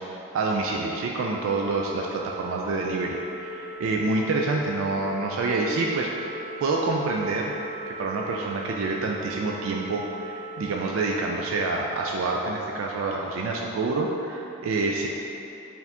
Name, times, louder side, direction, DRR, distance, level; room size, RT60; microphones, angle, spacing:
voice 1, 0.0-6.1 6.6-7.5 7.9-15.1, right 3 dB, 70° right, -1 dB, 0.3 m, -27 dB
Organ, 1.2-12.3, equal, 25° left, 0.6 m, -39 dB
4.8 x 2.6 x 3.4 m, 3.0 s
head